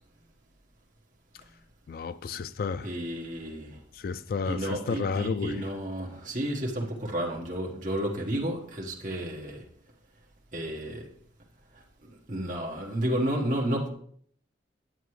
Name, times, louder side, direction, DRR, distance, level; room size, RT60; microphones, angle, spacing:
voice 1, 1.9-2.9 4.0-5.6, left 4 dB, 50° left, 0.3 m, -31 dB
voice 2, 2.8-3.7 4.4-9.6 10.5-11.1 12.3-13.9, right 1 dB, 45° right, 1.3 m, -31 dB
9.3 x 8.2 x 3.2 m
head